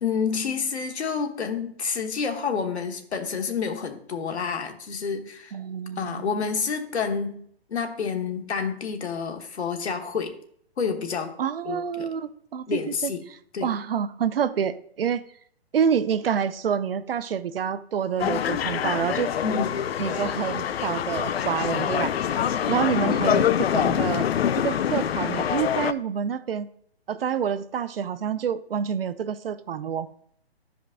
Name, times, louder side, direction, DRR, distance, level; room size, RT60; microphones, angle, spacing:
voice 1, 0.0-5.6 6.0-7.4 7.7-10.4 10.8-11.4 11.6-12.1 12.7-13.3 13.5-13.7 19.4-19.8 23.0-23.1, left 5 dB, 85° left, 5 dB, 1.2 m, -29 dB
voice 2, 5.5-6.3 11.4-13.1 13.6-15.2 15.7-19.3 20.0-22.1 22.7-24.3 24.5-26.7 27.1-30.1, right 7 dB, 60° right, 13 dB, 0.5 m, -27 dB
sound 1, 18.2-25.9, left 9 dB, 70° left, 0.5 m, -25 dB
12.0 x 5.1 x 2.5 m, 0.64 s
hypercardioid pair, 165°, 32 cm